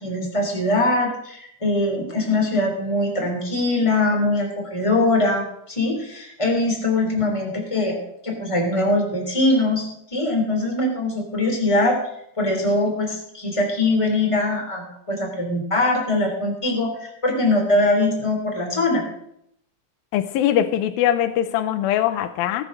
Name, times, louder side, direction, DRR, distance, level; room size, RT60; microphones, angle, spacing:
voice 1, 0.0-8.0 8.2-12.0 12.4-19.0, left 2 dB, 10° left, 1 dB, 2.8 m, -22 dB
voice 2, 20.1-22.6, left 11 dB, 85° left, 12 dB, 2.6 m, -21 dB
19.0 x 6.9 x 6.5 m, 0.74 s
omnidirectional pair, 4.2 m